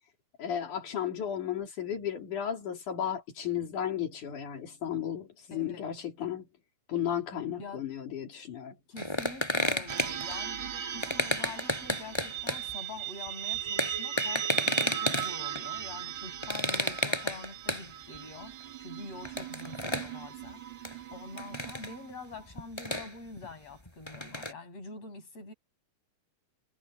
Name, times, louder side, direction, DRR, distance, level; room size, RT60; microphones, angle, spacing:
voice 1, 0.4-6.5 6.9-8.8, left 9 dB, 75° left, 4.5 m, -34 dB
voice 2, 5.5-5.8 7.6-7.8 8.9-20.6 21.1-25.5, left 3 dB, 50° left, 8.0 m, -45 dB
sound 1, 9.0-10.4 11.0-12.7 13.3-13.4 13.5-15.7 16.4-17.9 18.1-18.2 18.6-18.7 19.2-20.2 20.8-21.0 21.4-21.9 22.3-23.5 23.9-24.5, left 1 dB, 10° left, 4.3 m, -32 dB
sound 2, 9.9-22.4, right 10 dB, 50° right, 1.6 m, -38 dB
omnidirectional pair, 3.6 m